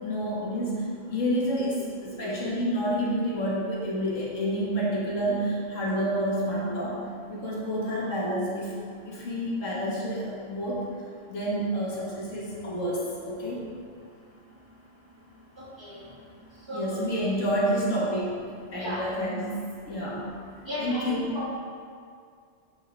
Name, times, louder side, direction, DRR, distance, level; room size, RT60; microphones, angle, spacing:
voice 1, 0.0-7.0 7.3-8.8 9.1-10.9 11.3-13.6 16.7-18.3 18.7-19.6 19.9-20.2 20.8-21.4, equal, 80° left, -5 dB, 1.8 m, -29 dB
voice 2, 15.6-15.9 16.7-17.0 18.8-19.0 20.6-21.5, left 1 dB, 20° right, -8 dB, 1.6 m, -34 dB
7.7 x 6.3 x 3.4 m, 2.2 s
omnidirectional pair, 1.3 m